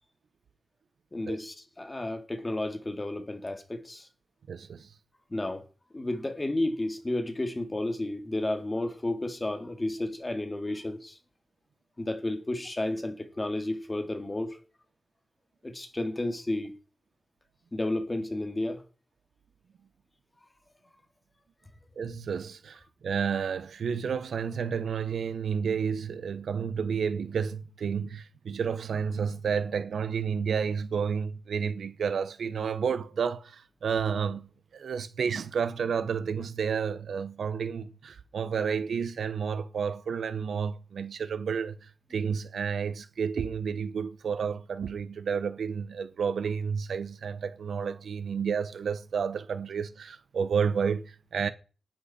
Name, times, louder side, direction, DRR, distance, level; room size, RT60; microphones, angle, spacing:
voice 1, 1.1-4.1 5.3-5.6 5.9-11.2 12.0-14.6 15.6-16.7 17.7-18.8, left 1 dB, 15° left, 2.4 m, -32 dB
voice 2, 4.5-4.9 22.0-51.5, right 6 dB, 65° right, 0.9 m, -31 dB
19.0 x 10.5 x 4.3 m
wide cardioid pair, 160°, 0 cm